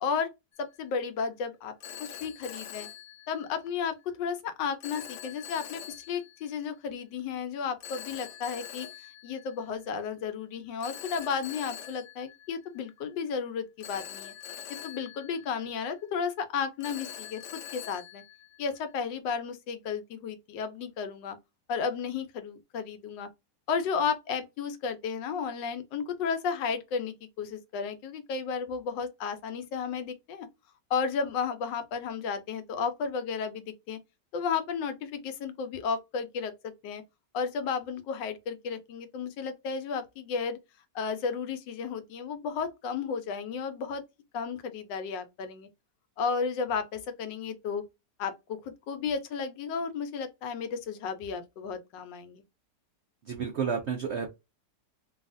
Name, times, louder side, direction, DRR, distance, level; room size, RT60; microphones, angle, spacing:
Telephone, 0.5-0.9 1.8-3.8 4.8-6.5 7.8-10.0 10.8-13.1 13.8-16.1 16.8-19.0, left 9 dB, 75° left, 1.1 m, -44 dB
voice 1, 0.6-1.7 2.0-2.9 3.3-5.8 6.1-8.9 9.2-14.3 14.8-18.2 18.6-21.4 21.7-23.3 23.7-30.5 30.9-34.0 34.3-37.0 37.3-40.6 40.9-44.0 44.3-45.7 46.2-47.8 48.2-52.4, left 6 dB, 90° left, 1.3 m, -33 dB
voice 2, 53.2-54.3, right 6 dB, 75° right, 0.6 m, -31 dB
3.2 x 2.3 x 2.5 m
omnidirectional pair, 1.9 m